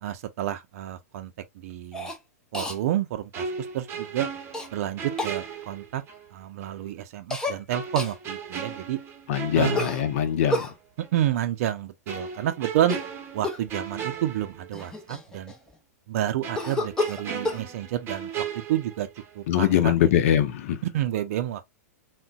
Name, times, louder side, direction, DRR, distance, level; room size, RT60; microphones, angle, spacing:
voice 1, 0.0-1.3 1.6-2.1 2.5-4.3 4.7-6.0 6.3-9.0 9.5-9.9 11.0-13.0 13.3-15.5 16.1-19.1 19.3-19.9 20.8-21.7, right 12 dB, 60° right, 0.5 m, -29 dB
Cough, 1.9-2.2 2.5-2.8 4.5-4.7 5.2-5.4 7.3-7.6 8.0-8.2 9.7-10.7 12.8-13.1 13.4-13.7 14.4-14.5 14.7-15.7 16.5-17.6, left 2 dB, 10° left, 0.6 m, -30 dB
sound 1, 3.3-6.3 6.6-6.7 7.7-10.7 11.0-11.2 12.1-15.1 15.3-15.5 16.4-19.4 19.7-19.9, right 6 dB, 30° right, 0.9 m, -36 dB
voice 2, 9.3-10.7 19.5-20.8, left 10 dB, 60° left, 0.7 m, -22 dB
3.7 x 2.2 x 2.3 m
hypercardioid pair, 120°, 8 cm